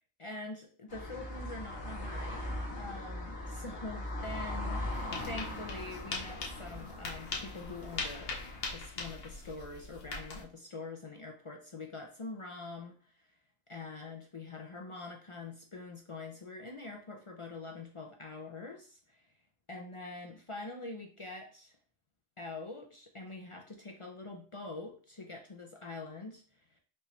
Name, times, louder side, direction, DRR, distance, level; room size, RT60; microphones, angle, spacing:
voice 1, 0.2-2.5 2.8-8.3 8.7-13.2 13.7-19.3 19.7-21.8 22.4-26.8, left 3 dB, 45° left, 2 dB, 0.4 m, -45 dB
sound 1, 0.9-8.7, left 1 dB, 85° left, 2.0 m, -40 dB
sound 2, 4.9-10.4, left 3 dB, 65° left, 1.1 m, -41 dB
5.5 x 2.5 x 3.1 m, 0.40 s
omnidirectional pair, 1.1 m